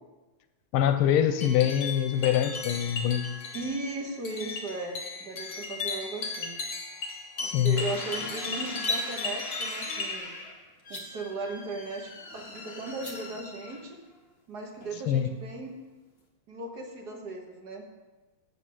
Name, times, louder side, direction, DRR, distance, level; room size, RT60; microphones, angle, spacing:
voice 1, 0.7-3.2 7.4-7.8 15.1-15.3, left 10 dB, 90° left, 10 dB, 1.6 m, -24 dB
sound 1, 1.4-10.2, left 4 dB, 60° left, 2.3 m, -36 dB
voice 2, 3.5-6.6 7.4-10.3 10.9-14.0 14.5-15.7 16.5-17.8, right 3 dB, 55° right, 2 dB, 1.6 m, -37 dB
sound 2, 7.8-14.2 14.8-15.3, left 2 dB, 35° left, 1.3 m, -42 dB
sound 3, 8.8-9.1 10.8-11.0 12.9-13.1, left 2 dB, 20° left, 0.7 m, -31 dB
7.5 x 6.6 x 7.5 m, 1.2 s
omnidirectional pair, 2.3 m